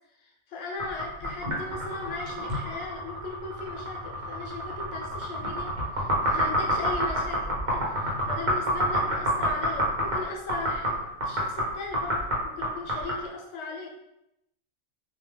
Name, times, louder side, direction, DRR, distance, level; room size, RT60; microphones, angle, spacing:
voice 1, 0.2-13.9, left 3 dB, 80° left, 0 dB, 0.9 m, -38 dB
sound 1, 0.8-13.2, equal, 45° right, 0.8 m, -28 dB
2.3 x 2.1 x 3.3 m, 0.84 s
omnidirectional pair, 1.2 m